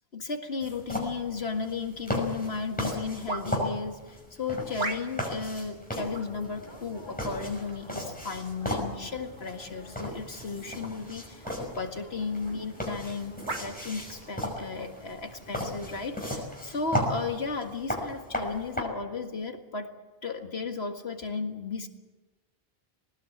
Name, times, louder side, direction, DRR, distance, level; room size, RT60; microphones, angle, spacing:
voice 1, 0.1-11.5 11.8-13.3 13.6-19.9 20.2-21.9, left 4 dB, 80° left, 5 dB, 2.2 m, -34 dB
sound 1, 0.6-18.8, equal, 10° left, 5.8 m, -36 dB
sound 2, 3.3-3.7 4.8-5.3 6.1-6.4 7.4-7.8 8.6-8.7 10.6-10.9 11.4-11.6 12.4-12.6 13.5-13.7 14.5-14.7, right 3 dB, 90° right, 2.1 m, -36 dB
sound 3, 6.0-17.5, left 1 dB, 25° left, 6.1 m, -51 dB
20.5 x 19.5 x 8.7 m, 1.2 s
omnidirectional pair, 1.0 m